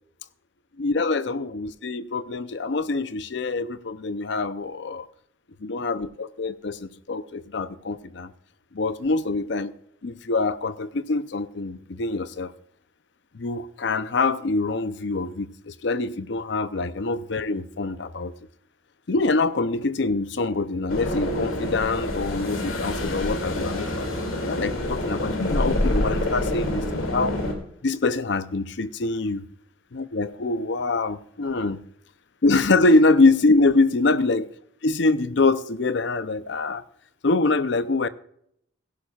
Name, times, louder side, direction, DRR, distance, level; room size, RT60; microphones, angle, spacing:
voice 1, 0.8-5.1 5.6-8.3 8.7-9.7 10.0-12.5 13.3-18.3 19.1-24.1 24.4-27.3 27.8-29.4 29.9-31.8 32.4-34.5 34.8-36.8 37.2-38.1, left 3 dB, 60° left, 0.6 m, -24 dB
sound 1, 20.9-27.5, left 1 dB, 90° left, 2.5 m, -27 dB
17.0 x 11.5 x 2.4 m
head